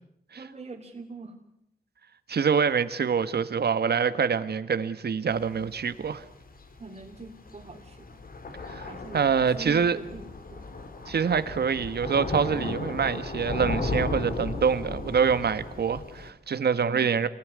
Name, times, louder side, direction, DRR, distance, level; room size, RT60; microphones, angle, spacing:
voice 1, 0.3-1.4 6.8-8.2 8.9-9.3 9.6-10.7, right 3 dB, 45° right, 3.2 m, -42 dB
voice 2, 2.3-6.2 8.7-8.9 9.1-10.0 11.1-17.3, right 6 dB, 75° right, 1.6 m, -25 dB
Thunder / Rain, 5.3-16.3, left 3 dB, 60° left, 3.6 m, -35 dB
28.0 x 19.5 x 9.7 m
wide cardioid pair, 145°, 17 cm